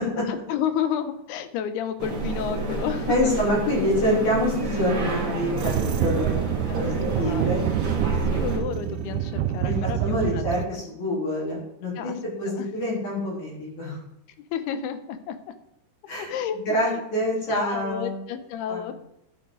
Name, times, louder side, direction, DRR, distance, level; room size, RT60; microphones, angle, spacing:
voice 1, 0.3-3.4 6.3-7.5 8.0-10.8 12.0-12.2 12.5-12.7 14.5-15.4 16.2-16.6 16.8-17.0 17.5-18.9, left 9 dB, 85° left, 10 dB, 2.8 m, -31 dB
sound 1, 2.0-8.6, right 2 dB, 40° right, 2.1 m, -29 dB
voice 2, 3.1-6.4 6.8-7.6 9.6-12.1 12.4-14.0 16.1-16.3 16.7-18.2 18.7-18.9, left 1 dB, 50° left, -5 dB, 4.7 m, -26 dB
sound 2, 5.6-10.7, right 11 dB, 85° right, 2.6 m, -27 dB
11.5 x 8.8 x 3.8 m, 0.80 s
omnidirectional pair, 4.5 m